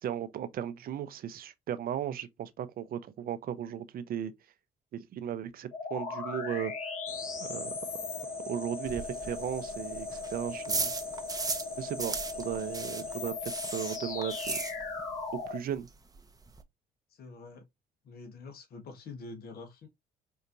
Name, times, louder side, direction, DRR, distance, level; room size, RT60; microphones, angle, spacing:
voice 1, 0.0-4.3 4.9-6.7 7.4-7.8 8.5-10.9 11.8-14.6 15.5-15.9, right 10 dB, 60° right, 0.7 m, -36 dB
sound 1, 5.7-15.6, left 4 dB, 45° left, 1.6 m, -38 dB
sound 2, 7.1-13.3, left 1 dB, 15° left, 1.4 m, -48 dB
sound 3, 8.8-11.7 12.0-15.2 15.4-15.5 15.9-16.0 16.1-16.6, right 4 dB, 20° right, 0.7 m, -36 dB
voice 2, 17.1-17.6 18.0-19.9, left 3 dB, 65° left, 1.3 m, -46 dB
4.6 x 2.8 x 2.6 m
supercardioid pair, 65°, 17 cm